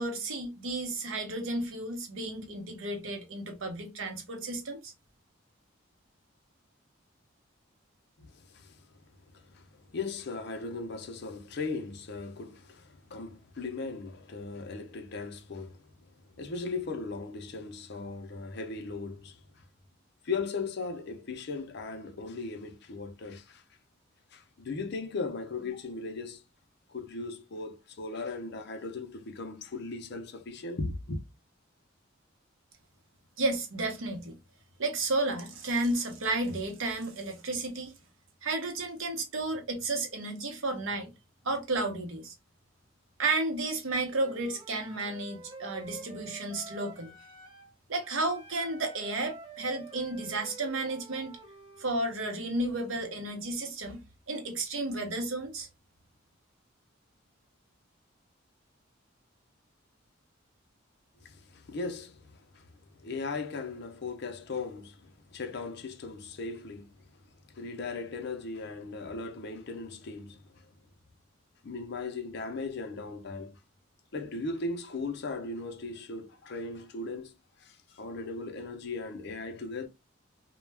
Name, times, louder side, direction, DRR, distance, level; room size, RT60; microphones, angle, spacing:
voice 1, 0.0-4.9 33.4-34.3 34.8-37.9 38.4-41.1 41.4-42.3 43.2-47.1 47.9-51.4 51.8-54.0 54.3-55.7, right 2 dB, 75° right, 0.8 m, -32 dB
voice 2, 8.2-8.9 9.3-19.6 20.2-23.6 24.3-26.4 26.9-31.2 61.2-62.7 63.0-67.0 67.5-70.7 71.6-73.6 74.1-79.9, left 3 dB, 55° left, 0.5 m, -38 dB
Wind instrument woodwind instrument, 44.1-47.7 48.0-51.9, right 3 dB, 25° right, 0.7 m, -48 dB
2.2 x 2.1 x 3.2 m
head